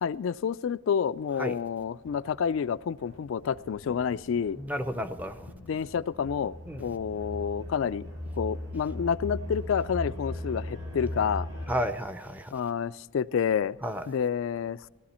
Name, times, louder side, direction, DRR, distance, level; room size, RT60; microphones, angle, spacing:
voice 1, 0.0-4.6 5.5-6.5 6.8-8.1 8.4-11.5 12.5-13.8 14.1-14.9, left 7 dB, 75° left, 0.3 m, -29 dB
sound 1, 1.9-11.8, left 1 dB, 70° right, 6.2 m, -39 dB
voice 2, 4.6-5.5 6.7-6.8 11.7-12.5 13.8-14.0, equal, 10° right, 0.6 m, -32 dB
18.0 x 12.5 x 4.3 m
head